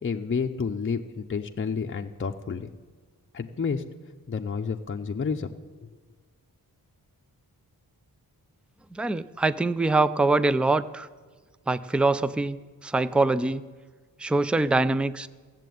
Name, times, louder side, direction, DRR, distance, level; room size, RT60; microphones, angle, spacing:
voice 1, 0.0-2.7 3.3-3.8 4.3-5.5, left 5 dB, 35° left, 3 dB, 0.6 m, -30 dB
voice 2, 8.9-11.1 11.7-12.6 12.8-13.6 14.2-15.3, right 2 dB, 5° right, 15 dB, 0.3 m, -24 dB
15.5 x 7.5 x 9.3 m, 1.5 s
wide cardioid pair, 130°, 37 cm